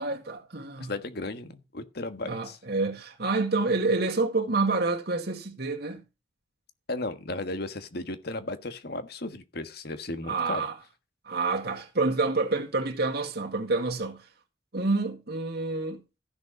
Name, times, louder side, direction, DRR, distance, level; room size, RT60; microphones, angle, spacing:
voice 1, 0.0-0.9 2.2-6.0 10.3-10.7 11.3-14.2 14.7-16.0, right 3 dB, 60° right, 2.0 m, -28 dB
voice 2, 0.8-2.6 6.9-10.7, left 2 dB, 55° left, 1.5 m, -35 dB
14.5 x 6.7 x 5.2 m
head